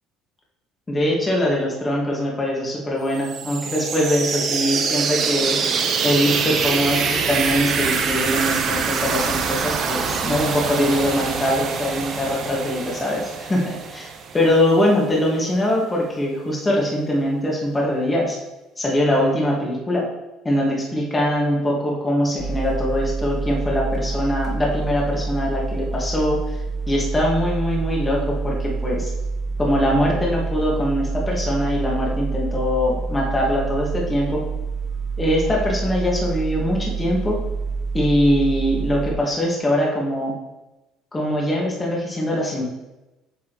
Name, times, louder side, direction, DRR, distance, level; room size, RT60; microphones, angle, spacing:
voice 1, 0.9-5.6 6.0-18.4 18.8-20.1 20.4-26.4 26.9-29.1 29.6-34.5 35.2-37.4 37.9-40.3 41.1-42.6, left 1 dB, 15° left, -3 dB, 1.8 m, -22 dB
sound 1, 3.1-14.8, right 5 dB, 45° right, 0.9 m, -24 dB
sound 2, 22.4-39.1, right 4 dB, 25° right, 1.8 m, -27 dB
8.4 x 6.1 x 3.1 m, 1.0 s
cardioid pair, 130°, 0 cm